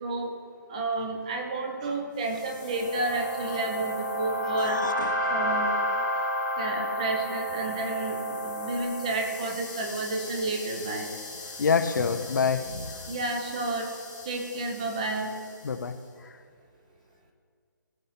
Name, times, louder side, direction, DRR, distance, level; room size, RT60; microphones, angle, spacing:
voice 1, 0.0-0.3 0.7-4.8 5.3-5.7 6.6-11.1 13.1-13.9 14.3-15.3, right 2 dB, 20° right, 4 dB, 0.8 m, -31 dB
sound 1, 2.3-15.6, equal, 5° left, 1.1 m, -33 dB
voice 2, 4.6-5.3 11.6-13.0 15.6-15.9, left 5 dB, 60° left, 10 dB, 0.7 m, -27 dB
16.0 x 5.4 x 4.2 m, 2.3 s
hypercardioid pair, 175°, 11 cm